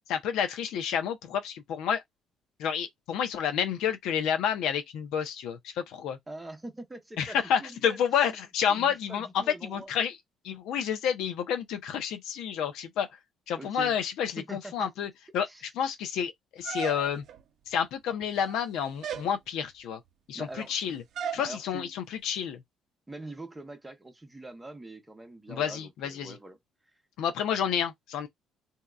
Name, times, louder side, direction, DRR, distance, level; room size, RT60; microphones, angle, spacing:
voice 1, 0.0-2.0 2.6-6.2 7.2-10.2 10.4-13.1 13.5-17.2 17.7-20.0 20.3-21.0 21.3-22.6 25.5-26.4 27.2-28.3, left 8 dB, 80° left, 0.7 m, -30 dB
voice 2, 6.3-8.0 8.7-9.9 13.5-13.9 14.4-14.9 15.5-15.6 20.3-20.8 21.4-21.9 23.1-26.6, right 2 dB, 10° right, 0.8 m, -43 dB
sound 1, 16.6-17.4 18.2-18.6 19.0-19.3 21.2-21.5, right 7 dB, 60° right, 0.6 m, -35 dB
3.6 x 2.8 x 2.3 m
cardioid pair, 135°, 0 cm